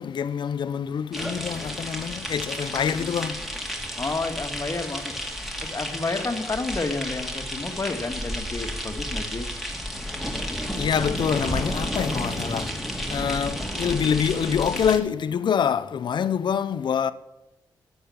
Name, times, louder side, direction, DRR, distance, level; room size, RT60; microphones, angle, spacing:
voice 1, 0.0-3.4 10.8-12.7 13.1-17.1, left 7 dB, 65° left, 0.7 m, -25 dB
sound 1, 1.1-15.0, equal, ahead, 2.6 m, -31 dB
voice 2, 4.0-5.1 5.6-9.5, left 3 dB, 35° left, 1.9 m, -30 dB
12.5 x 8.1 x 7.1 m
supercardioid pair, 55°, 9 cm